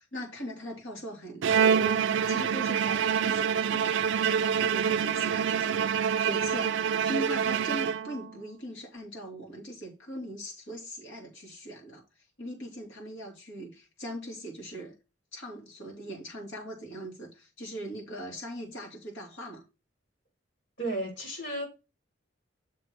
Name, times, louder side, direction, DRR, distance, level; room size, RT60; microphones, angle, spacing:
voice 1, 0.0-5.9 6.2-12.0 12.4-15.0 15.3-19.6, equal, 90° left, 2.8 m, -40 dB
Bowed string instrument, 1.4-8.4, right 7 dB, 70° right, 0.4 m, -26 dB
voice 2, 20.8-21.7, right 1 dB, 70° left, 3.1 m, -33 dB
6.8 x 3.1 x 5.8 m
head